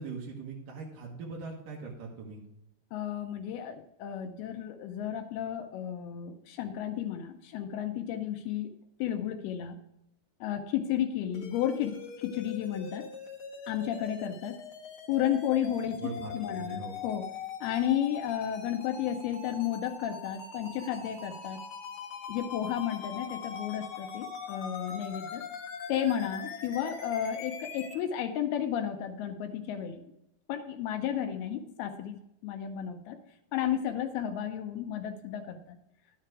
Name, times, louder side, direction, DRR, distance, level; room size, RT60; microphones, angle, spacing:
voice 1, 0.0-2.4 16.0-17.0, right 4 dB, 65° right, -2 dB, 2.5 m, -41 dB
voice 2, 2.9-8.7 9.0-9.8 10.4-13.1 13.7-14.6 15.1-17.3 17.6-21.6 22.3-25.4 25.9-30.1 30.5-33.2 33.5-35.8, left 10 dB, 80° left, 6 dB, 2.4 m, -33 dB
sound 1, 11.3-27.9, left 6 dB, 55° left, 2.1 m, -42 dB
11.5 x 6.7 x 4.7 m, 0.83 s
omnidirectional pair, 4.9 m